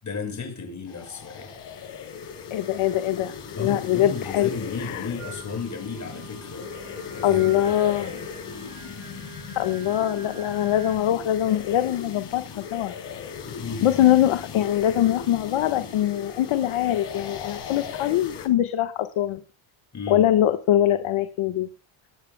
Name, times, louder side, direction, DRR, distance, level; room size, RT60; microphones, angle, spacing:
voice 1, 0.0-1.5 3.5-6.8 7.1-8.2 13.5-14.0 19.9-20.2, left 5 dB, 35° left, 6.6 m, -34 dB
sound 1, 0.9-18.5, left 7 dB, 55° left, 5.2 m, -38 dB
voice 2, 2.5-3.3 3.6-4.5 4.8-5.1 7.2-8.1 9.5-12.9 13.8-19.4 20.1-21.7, left 12 dB, 75° left, 1.4 m, -23 dB
Singing, 5.2-11.0, right 3 dB, 35° right, 6.1 m, -44 dB
20.0 x 12.5 x 2.2 m
cardioid pair, 135°, 49 cm